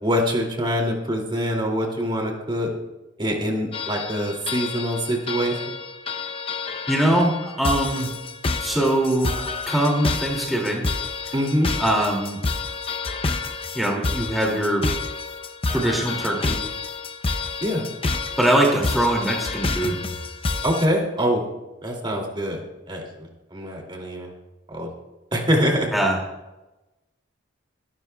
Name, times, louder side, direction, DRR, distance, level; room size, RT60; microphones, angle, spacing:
voice 1, 0.0-2.7 3.2-5.6 11.3-11.7 17.6-17.8 20.6-21.4 21.8-22.6 22.9-24.3 24.7-24.9 25.3-25.9, equal, 25° right, 1 dB, 2.4 m, -24 dB
sound 1, 3.7-20.9, left 3 dB, 30° left, 0.6 m, -29 dB
voice 2, 6.9-8.1 8.6-10.8 11.2-11.3 11.8-12.4 13.7-14.8 15.7-16.6 18.4-20.0 25.9-26.2, right 1 dB, ahead, -2 dB, 2.3 m, -22 dB
23.5 x 12.0 x 2.3 m, 1.0 s
head